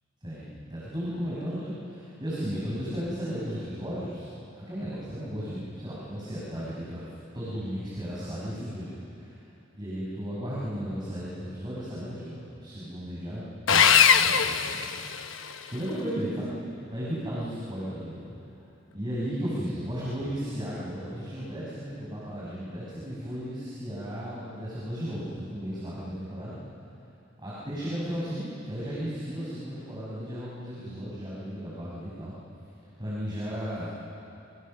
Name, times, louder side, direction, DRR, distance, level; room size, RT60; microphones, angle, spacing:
voice 1, 0.2-4.3 4.6-9.4 9.8-13.4 13.7-14.8 15.7-16.5 16.9-18.2 18.9-26.6 27.4-32.3 33.0-34.0, equal, 25° right, -8 dB, 6.2 m, -35 dB
Sawing, 13.7-15.6, left 7 dB, 80° left, 1.0 m, -21 dB
29.0 x 25.0 x 6.6 m, 2.8 s
head